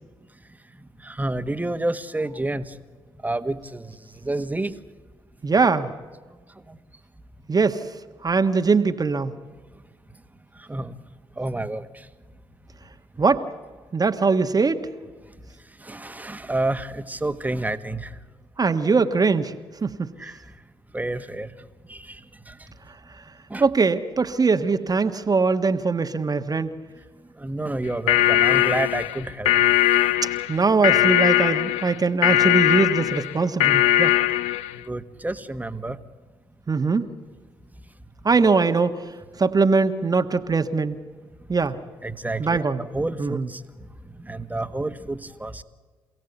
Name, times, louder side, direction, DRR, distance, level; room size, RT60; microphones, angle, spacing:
voice 1, 1.0-2.7 3.2-3.9 4.2-4.7 6.7-6.8 10.7-10.9 11.4-11.8 15.8-18.1 20.2-20.4 20.9-21.5 21.9-22.2 22.5-22.6 23.5-23.6 27.4-29.5 34.9-36.0 42.0-43.6 44.2-45.6, right 2 dB, 15° right, 10 dB, 1.5 m, -29 dB
voice 2, 5.4-5.9 7.5-7.8 8.2-9.3 13.2-13.4 13.9-14.8 18.6-19.5 19.8-20.1 23.6-26.8 30.2-34.1 36.7-37.1 38.2-39.0 39.4-41.0 41.5-41.8 42.4-42.8 43.2-43.5, right 4 dB, 35° right, 7 dB, 1.4 m, -21 dB
sound 1, 27.9-34.8, left 14 dB, 75° left, 0.6 m, -20 dB
27.5 x 16.5 x 8.1 m, 1.4 s
hypercardioid pair, 50°, 11 cm